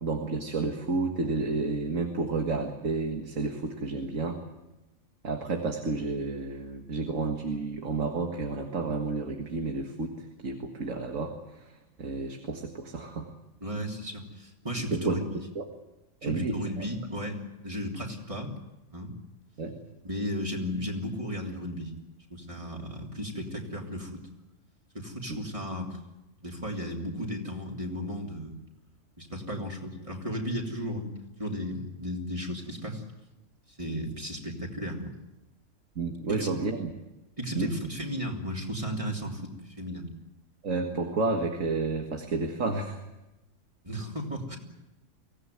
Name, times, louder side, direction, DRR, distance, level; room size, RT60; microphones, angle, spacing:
voice 1, 0.0-4.4 5.2-11.7 12.0-13.3 14.8-15.2 15.6-15.7 16.2-16.9 19.6-19.8 25.3-25.4 36.0-36.9 37.5-37.7 40.6-43.0, right 3 dB, 80° right, 4 dB, 2.1 m, -31 dB
voice 2, 13.6-15.2 16.2-17.4 17.6-18.5 18.9-19.1 20.0-21.9 22.3-24.2 24.9-26.0 26.4-28.5 29.2-31.1 31.4-33.0 33.8-35.1 36.3-36.5 37.4-39.5 39.8-40.1 43.8-44.6, equal, 25° right, 0 dB, 3.4 m, -34 dB
24.0 x 17.0 x 9.4 m, 0.99 s
omnidirectional pair, 1.3 m